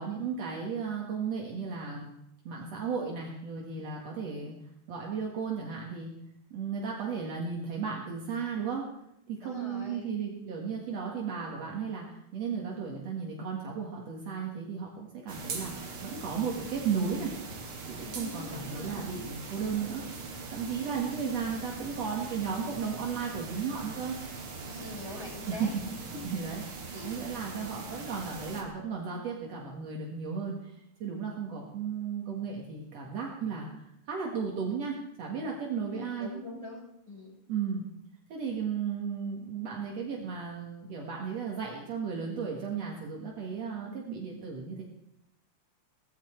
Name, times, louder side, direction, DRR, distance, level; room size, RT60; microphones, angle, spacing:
voice 1, 0.0-2.1 2.4-4.6 4.9-6.1 6.5-8.8 9.3-17.3 18.0-24.2 25.5-25.8 26.2-36.3 37.5-37.9 38.3-44.8, right 6 dB, 65° right, -1 dB, 2.9 m, -35 dB
voice 2, 9.4-10.1 18.1-19.0 24.6-25.7 26.3-26.4 26.9-27.1 35.8-37.4, left 2 dB, 10° right, -5 dB, 7.0 m, -43 dB
sound 1, 15.3-28.6, right 4 dB, 50° right, 2.7 m, -41 dB
17.5 x 15.0 x 4.6 m, 0.79 s
omnidirectional pair, 3.3 m